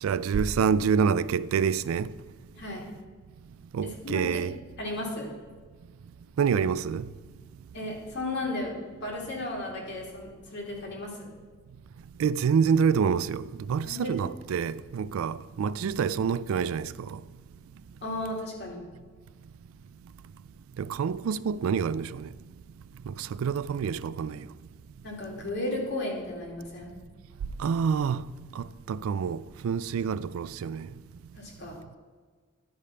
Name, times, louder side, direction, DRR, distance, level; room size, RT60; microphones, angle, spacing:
voice 1, 0.0-2.1 3.7-4.6 6.4-7.1 12.2-17.2 20.8-22.3 23.1-24.4 27.6-28.2 28.6-30.9, right 6 dB, 85° right, 0.3 m, -27 dB
voice 2, 2.6-2.9 3.8-4.4 4.8-5.3 7.7-8.7 9.0-11.3 13.9-14.1 18.0-18.8 25.0-27.0 31.3-31.8, left 1 dB, 55° left, 2.3 m, -34 dB
11.0 x 5.1 x 5.6 m
head